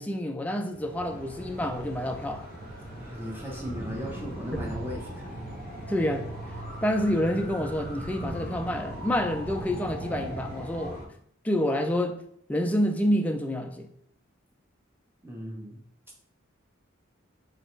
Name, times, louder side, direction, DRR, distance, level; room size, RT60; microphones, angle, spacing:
voice 1, 0.0-2.5 5.9-6.3 6.8-11.0 11.4-12.2 12.5-13.9, equal, 5° left, 0.3 m, -28 dB
sound 1, 0.7-11.0, right 1 dB, 50° right, 1.6 m, -38 dB
voice 2, 3.0-5.3 15.2-15.8, equal, 10° right, 0.8 m, -37 dB
4.2 x 3.2 x 3.0 m
head